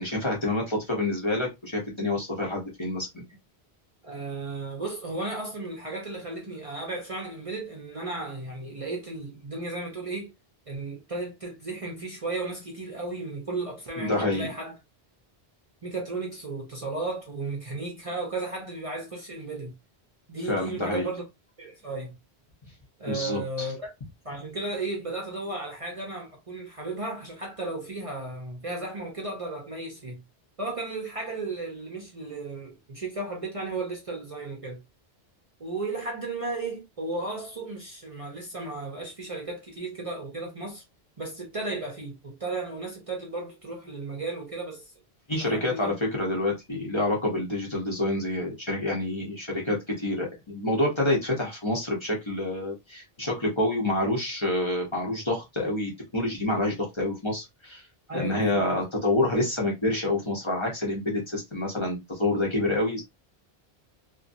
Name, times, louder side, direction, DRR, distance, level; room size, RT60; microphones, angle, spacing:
voice 1, 0.0-3.2 14.0-14.5 20.5-21.1 23.1-23.7 45.3-57.9 58.1-63.0, left 1 dB, 30° left, 0.9 m, -27 dB
voice 2, 4.0-10.3 10.7-14.8 15.8-19.7 20.3-21.2 21.6-22.2 23.0-23.9 24.2-30.2 30.6-34.8 35.6-40.8 41.2-44.9 45.3-45.9 58.1-58.7, right 3 dB, 35° right, 0.7 m, -34 dB
2.8 x 2.5 x 2.5 m
omnidirectional pair, 1.1 m